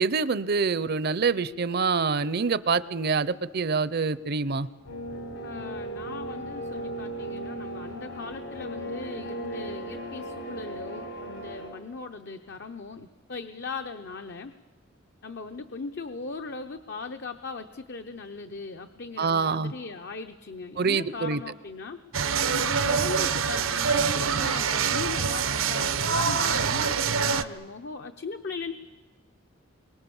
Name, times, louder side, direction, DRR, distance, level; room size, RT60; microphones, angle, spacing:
voice 1, 0.0-4.7 19.2-19.7 20.8-21.4, right 5 dB, 55° right, 17 dB, 0.7 m, -26 dB
sound 1, 4.8-11.7, right 1 dB, 75° left, 4.5 m, -36 dB
voice 2, 5.4-14.5 15.2-22.0 22.5-28.7, left 4 dB, 60° left, 7 dB, 0.8 m, -38 dB
sound 2, 22.1-27.4, right 6 dB, 85° right, 0.9 m, -25 dB
28.0 x 23.0 x 7.1 m, 1.4 s
head